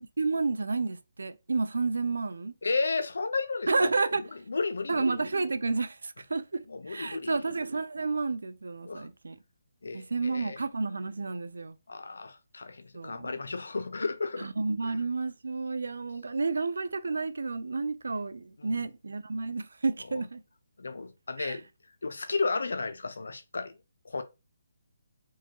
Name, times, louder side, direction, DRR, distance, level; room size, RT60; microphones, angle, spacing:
voice 1, 0.2-2.5 3.7-4.2 4.9-9.4 9.9-11.8 12.9-13.3 14.4-20.4 21.4-21.6, right 3 dB, 85° right, 0.4 m, -31 dB
voice 2, 2.6-3.9 4.2-5.2 6.7-7.4 8.8-9.1 9.8-10.6 11.9-14.5 14.8-14.9 18.6-18.8 20.1-20.2 20.8-21.6 22.0-23.7 24.0-24.2, left 4 dB, 85° left, 0.6 m, -33 dB
4.6 x 2.3 x 2.9 m
hypercardioid pair, 170°, 0 cm